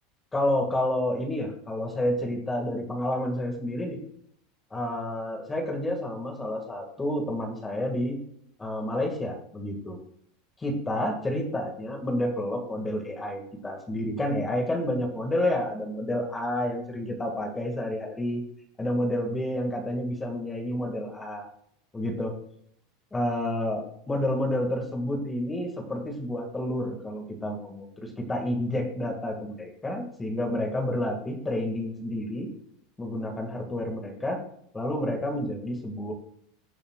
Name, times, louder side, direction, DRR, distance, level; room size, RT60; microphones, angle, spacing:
voice 1, 0.3-4.0 4.7-8.2 8.6-10.0 10.6-18.4 18.8-21.5 21.9-22.3 23.1-32.5 33.0-34.4 34.7-36.1, left 1 dB, 10° left, 2 dB, 2.0 m, -29 dB
22.5 x 8.5 x 2.4 m, 0.71 s
supercardioid pair, 175°, 0 cm